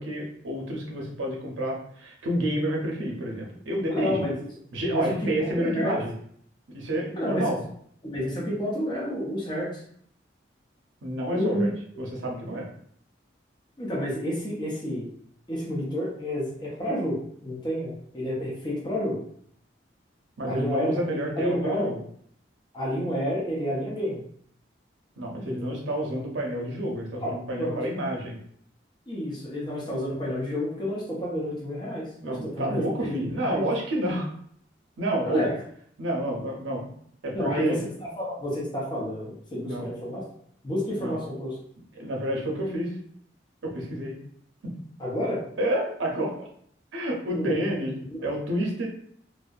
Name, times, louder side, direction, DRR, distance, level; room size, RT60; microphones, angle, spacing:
voice 1, 0.0-4.2 4.7-6.1 6.7-7.6 11.0-11.7 12.0-12.7 20.4-22.0 25.2-28.4 32.2-34.3 35.0-35.5 36.0-36.9 37.2-37.8 39.6-39.9 41.0-41.2 41.9-42.9 43.6-44.2 44.6-44.7 45.6-46.5 46.9-48.0 48.2-48.9, right 1 dB, 85° right, 0 dB, 0.6 m, -29 dB
voice 2, 3.9-4.3 4.9-6.0 7.1-7.5 8.0-9.7 11.3-11.7 13.8-15.1 15.5-17.2 17.4-19.2 20.5-21.0 21.4-21.9 22.7-24.2 25.5-25.8 27.2-27.8 29.1-33.6 35.2-35.5 37.3-37.8 38.2-40.2 40.6-41.5 45.0-45.4 47.3-47.5 48.1-48.3, equal, 25° left, -5 dB, 0.6 m, -30 dB
2.6 x 2.0 x 2.3 m, 0.64 s
head